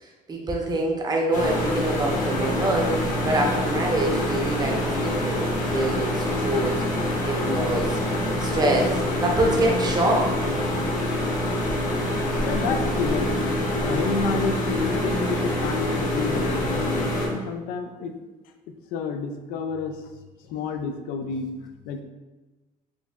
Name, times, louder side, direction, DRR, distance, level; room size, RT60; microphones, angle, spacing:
voice 1, 0.0-5.4 5.7-6.8 7.2-8.0 8.4-10.4 13.8-14.0, right 1 dB, 25° right, 0 dB, 0.7 m, -25 dB
sound 1, 1.3-17.3, left 1 dB, 60° left, 0.9 m, -25 dB
voice 2, 12.4-13.3 13.9-18.2 18.9-20.0 20.4-21.6 21.8-22.0, left 5 dB, 90° left, 6 dB, 0.4 m, -30 dB
4.3 x 2.8 x 2.3 m, 1.2 s
cardioid pair, 110°, 15 cm